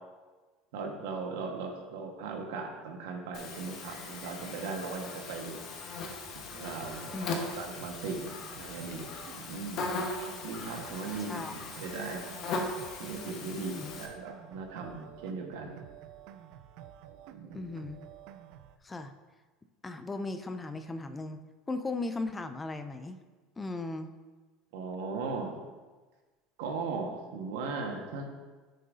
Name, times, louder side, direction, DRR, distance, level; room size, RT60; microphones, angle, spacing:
voice 1, 0.7-5.6 6.5-9.1 9.5-10.0 10.4-11.4 11.8-12.3 13.0-15.9 17.4-17.6 24.7-25.5 26.6-28.3, right 4 dB, 85° right, 2 dB, 1.4 m, -38 dB
Buzz, 3.3-14.1, left 3 dB, 45° left, 1.2 m, -39 dB
sound 1, 6.8-18.8, right 10 dB, 65° right, 0.5 m, -50 dB
voice 2, 11.2-11.6 13.6-13.9 17.5-18.0 18.8-19.1 19.8-21.4 21.7-23.2 23.6-24.1, left 2 dB, 15° left, 9 dB, 0.4 m, -37 dB
10.0 x 6.6 x 2.7 m, 1.3 s
supercardioid pair, 140°, 0 cm